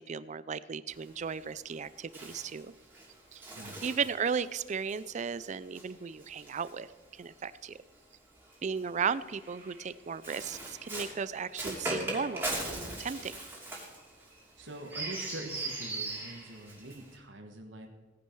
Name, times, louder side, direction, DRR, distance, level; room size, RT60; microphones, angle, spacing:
voice 1, 0.0-2.7 3.3-3.4 3.8-6.9 7.1-7.8 8.6-13.4, right 6 dB, 40° right, 17 dB, 0.4 m, -35 dB
Bird, 0.9-7.4 8.4-17.2, right 2 dB, 10° right, 2.8 m, -41 dB
voice 2, 3.6-3.9 14.6-17.9, right 1 dB, 70° right, 3 dB, 1.5 m, -44 dB
17.5 x 10.0 x 4.6 m, 1.3 s
head